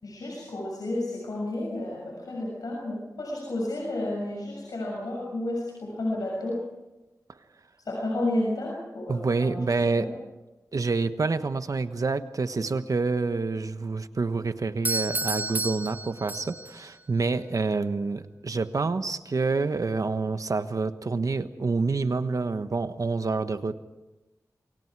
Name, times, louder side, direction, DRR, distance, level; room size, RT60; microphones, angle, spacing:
voice 1, 0.0-6.6 7.8-10.1, left 1 dB, 80° left, -3 dB, 6.8 m, -31 dB
voice 2, 9.1-10.1 10.7-23.7, right 3 dB, 65° right, 10 dB, 1.2 m, -27 dB
Doorbell, 14.9-16.9, right 2 dB, 30° right, 0.7 m, -31 dB
28.0 x 23.5 x 4.8 m, 1.1 s
wide cardioid pair, 65°, 6 cm